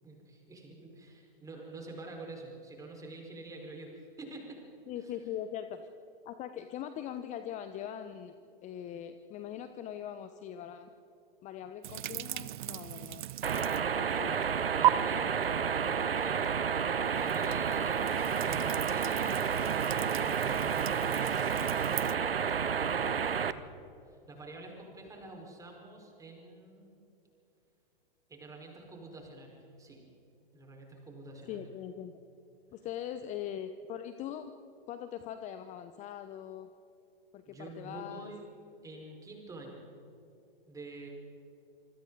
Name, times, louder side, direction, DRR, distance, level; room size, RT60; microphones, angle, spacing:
voice 1, 0.0-4.6 4.9-5.1 14.7-15.5 15.8-16.4 17.1-23.6 24.1-27.0 28.3-30.0 30.5-31.6 37.5-38.5 38.8-39.8 40.6-41.1, right 2 dB, 10° right, 0 dB, 4.9 m, -47 dB
voice 2, 4.9-5.9 6.2-8.3 8.6-10.9 11.4-13.2 14.0-14.4 31.5-32.1 32.7-34.5 34.9-36.7 37.3-38.3, left 10 dB, 25° left, 10 dB, 0.9 m, -41 dB
sound 1, 11.8-14.0 14.3-14.9 17.0-22.2, right 13 dB, 55° right, 0.7 m, -35 dB
sound 2, 13.4-23.5, right 7 dB, 75° right, 1.1 m, -30 dB
27.0 x 25.0 x 4.1 m, 2.8 s
figure-of-eight pair, 110°, 29 cm